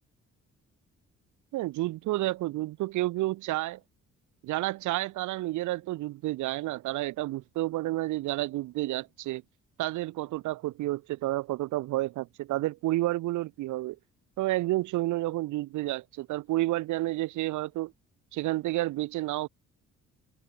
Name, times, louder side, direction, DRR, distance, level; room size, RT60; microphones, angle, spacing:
voice 1, 1.5-3.8 4.4-9.4 9.8-14.0 14.4-17.9 18.3-19.5, right 17 dB, 75° right, 0.6 m, -30 dB
cardioid pair, 90°, 30 cm